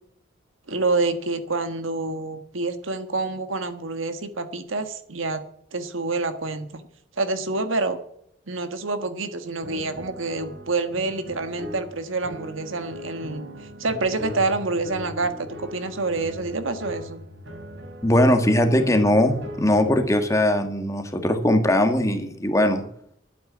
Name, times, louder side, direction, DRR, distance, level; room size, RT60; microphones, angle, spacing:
voice 1, 0.7-5.4 5.7-6.8 7.2-8.0 8.5-17.2, right 3 dB, 85° right, 9 dB, 1.6 m, -27 dB
sound 1, 9.6-20.1, equal, 70° right, 3.4 m, -39 dB
voice 2, 18.0-22.8, left 1 dB, 15° left, 6 dB, 1.7 m, -20 dB
12.0 x 9.0 x 8.7 m, 0.71 s
head